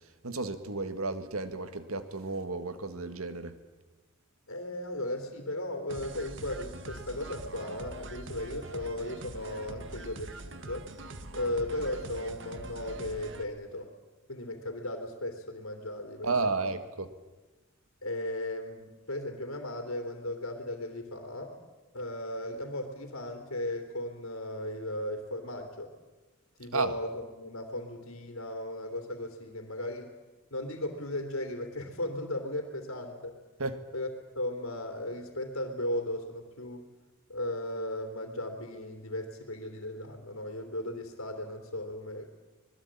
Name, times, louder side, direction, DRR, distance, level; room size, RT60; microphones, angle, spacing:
voice 1, 0.2-3.6 16.2-17.1 26.7-26.9 33.6-33.8, right 3 dB, 90° right, 10 dB, 1.8 m, -32 dB
voice 2, 4.5-10.9 11.3-13.9 14.3-16.3 18.0-21.5 21.9-25.9 26.6-30.1 30.5-33.4 33.9-34.1 34.3-36.8 37.3-42.3, left 1 dB, 85° left, 4 dB, 3.1 m, -36 dB
sound 1, 5.9-13.4, right 2 dB, 60° right, 1.8 m, -43 dB
26.0 x 20.0 x 8.8 m, 1.1 s
head